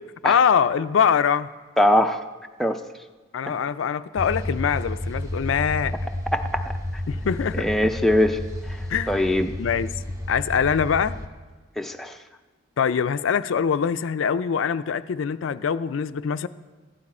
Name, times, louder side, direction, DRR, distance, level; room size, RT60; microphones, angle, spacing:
voice 1, 0.2-1.5 3.3-5.9 7.1-7.7 8.9-9.1 9.4-9.9 10.3-11.1 12.8-16.5, left 7 dB, 80° left, 13 dB, 0.4 m, -23 dB
voice 2, 1.8-2.2 2.6-2.8 6.3-6.6 7.5-8.4 9.1-9.5 11.8-12.1, left 1 dB, ahead, 5 dB, 0.4 m, -21 dB
sound 1, 4.2-11.3, left 1 dB, 15° right, 0.9 m, -31 dB
14.5 x 11.0 x 4.2 m, 1.3 s
head